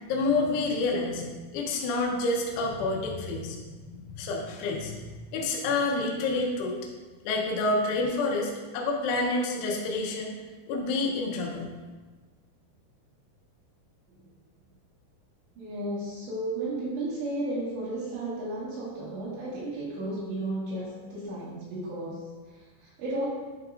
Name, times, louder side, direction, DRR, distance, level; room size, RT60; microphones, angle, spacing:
voice 1, 0.1-5.0 5.3-6.8 7.3-10.4 10.7-11.7, left 3 dB, 80° left, 0 dB, 3.3 m, -28 dB
voice 2, 15.6-23.3, right 1 dB, 70° right, -9 dB, 3.6 m, -34 dB
10.5 x 4.7 x 2.5 m, 1.4 s
omnidirectional pair, 5.5 m